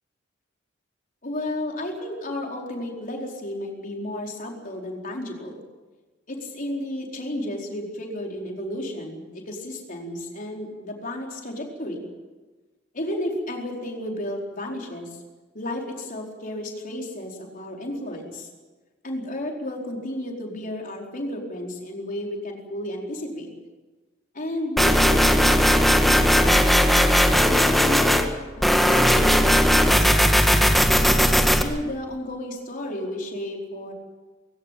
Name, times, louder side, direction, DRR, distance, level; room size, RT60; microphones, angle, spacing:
voice 1, 1.2-5.6 6.3-12.1 12.9-15.2 15.5-18.5 19.0-23.5 24.3-26.9 27.5-28.2 28.6-30.5 30.9-33.9, left 1 dB, 45° left, 0 dB, 4.6 m, -33 dB
sound 1, 24.8-28.2 28.6-31.6, equal, ahead, 1.8 m, -18 dB
20.5 x 17.0 x 9.2 m, 1.3 s
head